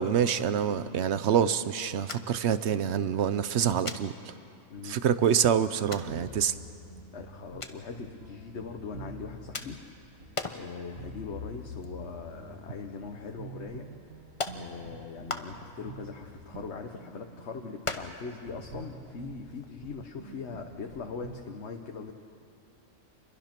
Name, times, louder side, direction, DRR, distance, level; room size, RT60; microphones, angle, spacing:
voice 1, 0.0-4.1 4.8-6.5, right 8 dB, 60° right, 13 dB, 1.0 m, -26 dB
sound 1, 2.1-2.5 2.8-2.9 3.8-4.0 4.9-5.0 5.9-6.1 7.6-7.8 9.5-9.9 10.3-10.7 11.1-11.3 11.6-12.5 12.8-12.9 13.7-13.8 14.4-14.6 15.3-15.8 16.3-17.1 17.8-18.3 18.6-18.7 19.0-19.1 19.5-19.7, left 3 dB, 25° left, 0.9 m, -37 dB
sound 2, 6.0-21.4, right 2 dB, 85° right, 2.2 m, -47 dB
voice 2, 7.1-9.8 10.0-13.9 14.5-22.1, left 5 dB, 55° left, 3 dB, 1.3 m, -41 dB
28.0 x 22.5 x 6.0 m, 2.6 s
omnidirectional pair, 1.4 m